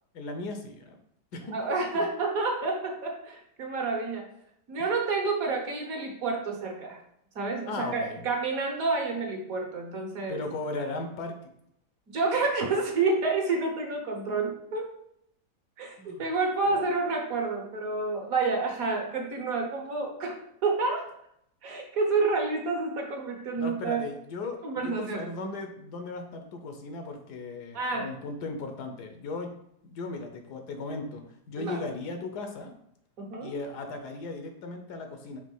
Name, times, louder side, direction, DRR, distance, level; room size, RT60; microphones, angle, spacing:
voice 1, 0.1-1.0 1.3-1.6 1.9-2.0 7.7-8.2 10.3-11.5 16.0-16.3 16.7-16.9 23.6-29.6 29.8-32.7 33.4-35.4, left 3 dB, 75° left, 5 dB, 1.4 m, -37 dB
voice 2, 1.5-4.3 4.7-7.0 7.3-10.4 12.1-14.9 15.8-21.1 21.6-24.0 24.6-25.2 27.7-28.1 31.6-31.8 33.2-33.5, right 3 dB, 55° right, 1 dB, 1.5 m, -29 dB
5.3 x 3.3 x 5.4 m, 0.73 s
omnidirectional pair, 1.8 m